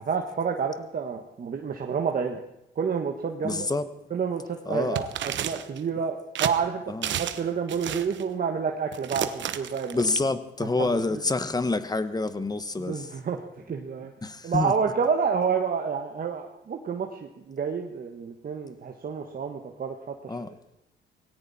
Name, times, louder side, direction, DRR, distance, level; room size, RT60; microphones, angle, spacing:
voice 1, 0.0-2.4 2.7-3.7 4.1-6.8 7.2-10.0 10.8-11.2 12.8-14.1 14.4-19.9 20.2-20.6, right 6 dB, 45° right, 3 dB, 1.5 m, -29 dB
voice 2, 3.4-3.9 4.7-5.0 6.9-7.1 9.9-13.1 14.2-14.7 20.3-20.5, left 3 dB, 20° left, 12 dB, 1.3 m, -27 dB
sound 1, 4.9-5.8 6.3-6.5 7.0-7.4 7.7-8.2 8.9-10.2, right 10 dB, 70° right, 1.1 m, -31 dB
18.5 x 17.0 x 4.3 m, 0.89 s
cardioid pair, 90°, 20 cm